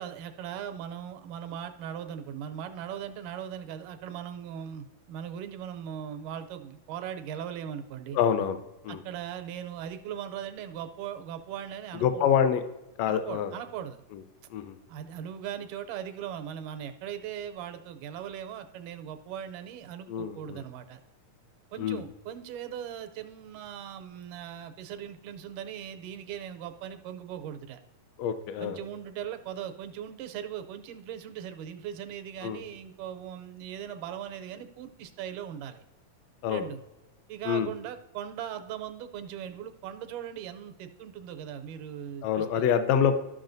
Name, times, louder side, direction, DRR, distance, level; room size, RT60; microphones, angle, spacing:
voice 1, 0.0-8.2 8.9-12.3 13.1-14.0 14.9-21.0 21.7-27.8 28.6-35.8 36.5-36.8 37.3-42.7, right 9 dB, 90° right, 8 dB, 2.2 m, -39 dB
voice 2, 8.1-8.6 8.8-9.0 12.0-12.6 13.0-13.5 14.1-14.2 14.5-14.8 20.1-20.6 21.8-22.0 28.2-28.8 32.4-32.6 36.4-36.7 37.4-37.7 42.2-43.2, left 8 dB, 75° left, 9 dB, 1.5 m, -26 dB
13.0 x 6.1 x 2.6 m, 0.99 s
omnidirectional pair, 3.6 m